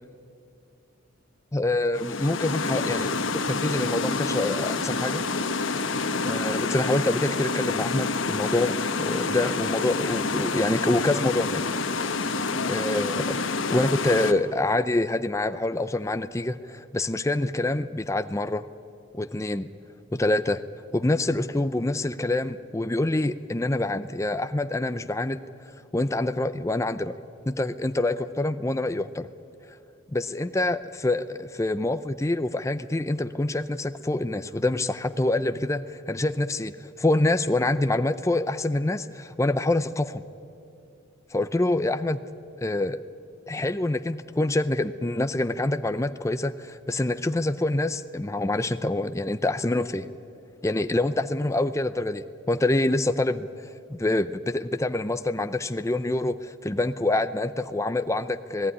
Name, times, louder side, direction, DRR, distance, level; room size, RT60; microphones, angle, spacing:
voice 1, 1.5-3.2 3.5-5.2 6.3-11.6 12.7-18.6 19.1-19.7 20.1-20.6 20.9-25.4 25.9-27.2 27.5-29.3 30.1-40.2 41.3-42.2 42.6-43.0 43.5-50.1 50.6-53.5 53.9-58.7, left 2 dB, 15° left, 11 dB, 0.5 m, -26 dB
sound 1, 1.9-14.3, left 4 dB, 75° left, 1.2 m, -28 dB
26.5 x 17.5 x 9.9 m, 2.6 s
head